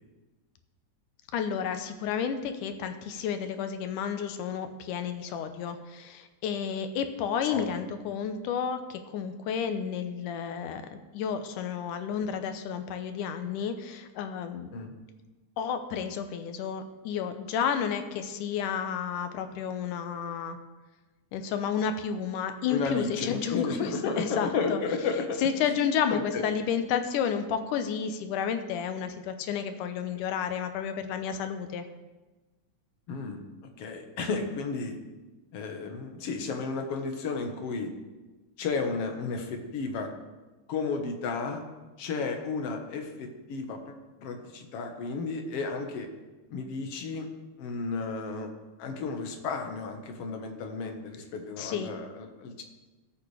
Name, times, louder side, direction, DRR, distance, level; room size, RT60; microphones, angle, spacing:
voice 1, 1.3-14.7 15.6-20.6 21.3-24.8 25.4-31.8 51.6-51.9, left 7 dB, 85° left, 8 dB, 2.4 m, -31 dB
voice 2, 22.7-25.8 26.1-26.4 33.1-33.4 33.8-35.0 35.5-37.9 38.6-40.1 40.7-41.6 42.0-43.9 44.2-46.1 46.5-47.3 47.6-48.5 48.8-52.6, left 4 dB, 55° left, 4 dB, 2.1 m, -33 dB
20.0 x 8.5 x 3.3 m, 1.2 s
omnidirectional pair, 3.6 m